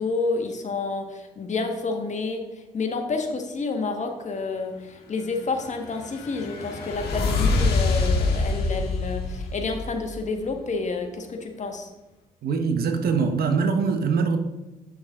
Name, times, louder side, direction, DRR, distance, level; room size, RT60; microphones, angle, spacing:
voice 1, 0.0-2.5 2.7-11.9, left 3 dB, 45° left, 4 dB, 1.5 m, -29 dB
sound 1, 5.4-10.4, left 3 dB, 65° left, 1.6 m, -26 dB
voice 2, 12.4-14.4, right 5 dB, 60° right, 6 dB, 1.1 m, -23 dB
9.0 x 6.1 x 3.8 m, 1.1 s
hypercardioid pair, 50°, 17 cm